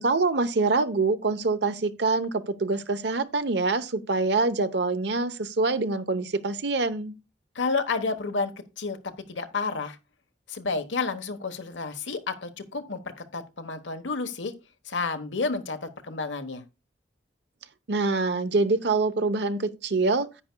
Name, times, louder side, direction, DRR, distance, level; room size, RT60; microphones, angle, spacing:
voice 1, 0.0-7.1 17.9-20.3, right 3 dB, 65° right, 0.8 m, -25 dB
voice 2, 7.5-8.5 8.8-9.0 9.3-10.0 10.5-14.5 14.8-16.6, left 4 dB, 90° left, 1.2 m, -30 dB
10.0 x 9.2 x 2.2 m
head